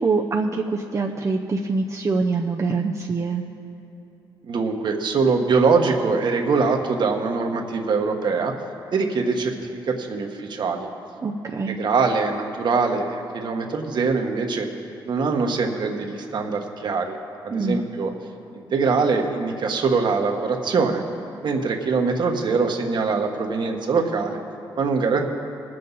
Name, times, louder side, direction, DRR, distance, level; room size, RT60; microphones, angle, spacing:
voice 1, 0.0-3.4 11.2-11.8 17.5-17.8, right 4 dB, 35° right, 1 dB, 0.7 m, -24 dB
voice 2, 4.4-8.5 8.9-10.9 11.5-14.7 15.0-17.2 17.4-18.1 18.5-21.0 21.4-24.4 24.8-25.3, right 4 dB, 60° right, 3 dB, 1.4 m, -23 dB
20.5 x 7.7 x 4.1 m, 3.0 s
cardioid pair, 80°, 9 cm